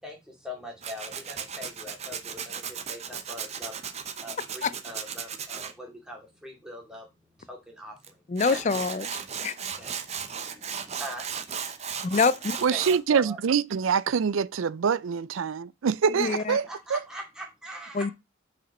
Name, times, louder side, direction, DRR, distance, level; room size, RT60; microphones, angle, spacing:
voice 1, 0.0-3.8 4.2-7.1 7.4-8.8 9.4-12.1 12.7-13.4 16.5-18.1, left 1 dB, 5° right, 2.3 m, -42 dB
Tools, 0.8-5.7 8.0-8.1 8.4-13.0, right 7 dB, 35° right, 0.7 m, -36 dB
voice 2, 8.3-9.1 9.4-9.7 12.0-12.6 16.2-16.6 17.9-18.1, left 4 dB, 35° left, 0.4 m, -25 dB
voice 3, 12.6-16.7 16.9-17.0, right 6 dB, 85° right, 0.4 m, -25 dB
6.0 x 5.0 x 5.3 m
head